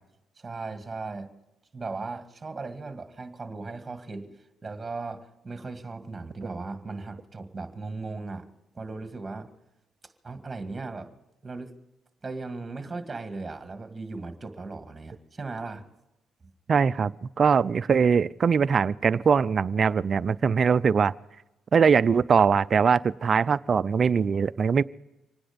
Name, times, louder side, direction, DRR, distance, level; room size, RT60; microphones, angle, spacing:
voice 1, 0.4-1.3 1.7-4.3 4.6-8.5 8.7-9.5 10.2-11.1 11.4-11.7 12.2-15.8, right 3 dB, 25° right, 8 dB, 2.1 m, -37 dB
voice 2, 16.7-21.1 21.7-24.8, right 6 dB, 45° right, 16 dB, 0.5 m, -22 dB
25.5 x 9.9 x 5.2 m, 0.94 s
cardioid pair, 90°, 0 cm